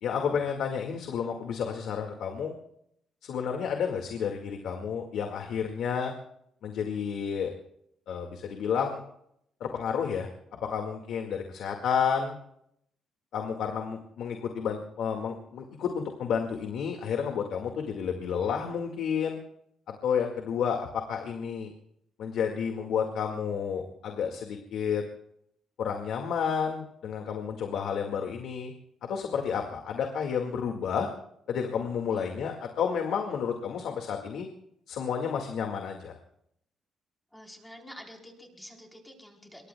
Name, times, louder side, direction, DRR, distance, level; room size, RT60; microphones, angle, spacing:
voice 1, 0.0-2.5 3.2-6.1 6.6-7.5 8.1-9.0 9.6-10.3 10.6-12.4 13.3-19.4 19.9-21.7 22.2-25.0 25.8-28.7 29.0-31.1 31.5-34.5 34.9-36.2, left 7 dB, 75° left, 3 dB, 1.9 m, -31 dB
voice 2, 37.3-39.7, equal, 5° left, 1 dB, 3.9 m, -48 dB
26.0 x 23.0 x 2.3 m, 0.74 s
cardioid pair, 130°, 0 cm